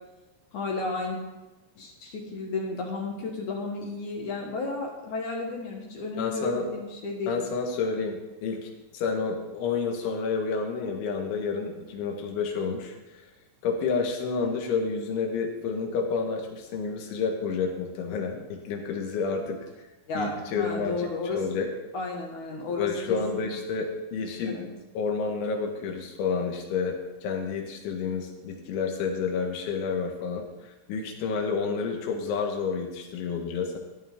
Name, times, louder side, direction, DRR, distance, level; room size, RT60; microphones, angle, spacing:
voice 1, 0.5-1.2 1.8-7.4 20.1-21.4 21.9-23.2 24.4-24.7, left 3 dB, 60° left, 0 dB, 2.3 m, -33 dB
voice 2, 6.2-6.7 7.3-13.0 13.6-19.6 20.2-21.1 21.3-21.7 22.8-24.6 25.0-33.8, left 5 dB, 85° left, 3 dB, 3.9 m, -30 dB
14.0 x 11.0 x 3.6 m, 1.1 s
omnidirectional pair, 5.3 m